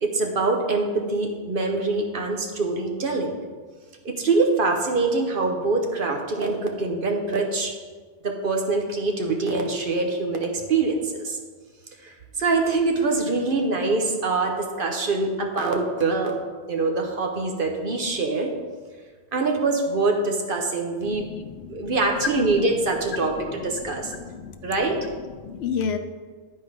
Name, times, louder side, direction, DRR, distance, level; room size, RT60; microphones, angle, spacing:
voice 1, 0.0-3.4 4.0-7.7 8.2-11.4 12.0-16.4 16.7-18.5 19.3-21.2 21.7-24.1 24.6-25.1, right 3 dB, 55° right, 2 dB, 1.1 m, -24 dB
voice 2, 21.0-22.0 24.0-24.7 25.4-26.0, left 6 dB, 70° left, 9 dB, 0.8 m, -31 dB
10.5 x 4.4 x 5.0 m, 1.5 s
omnidirectional pair, 1.1 m